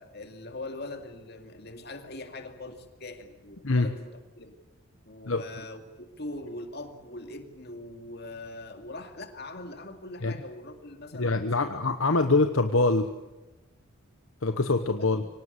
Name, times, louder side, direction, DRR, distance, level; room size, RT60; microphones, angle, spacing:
voice 1, 0.0-4.6 5.1-11.7 12.1-12.2 15.0-15.3, left 2 dB, 50° left, 6 dB, 2.5 m, -42 dB
voice 2, 11.1-13.1 14.4-15.2, left 3 dB, 70° left, 8 dB, 1.1 m, -24 dB
24.5 x 19.0 x 8.2 m, 1.1 s
head